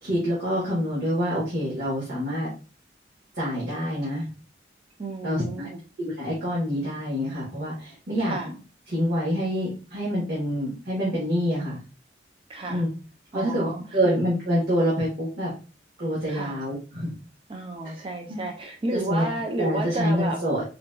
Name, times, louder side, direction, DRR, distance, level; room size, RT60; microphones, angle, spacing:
voice 1, 0.0-2.5 3.3-4.3 5.2-5.6 6.0-8.4 8.9-11.8 12.7-12.9 13.3-15.5 16.0-17.1 17.8-18.4 18.9-19.3 19.6-20.6, equal, 60° right, -7 dB, 1.1 m, -26 dB
voice 2, 5.0-5.8 8.2-8.5 12.5-12.8 13.3-14.1 16.3-16.6 17.5-20.4, right 2 dB, 30° right, 2 dB, 0.4 m, -32 dB
3.8 x 2.2 x 2.2 m, 0.34 s
head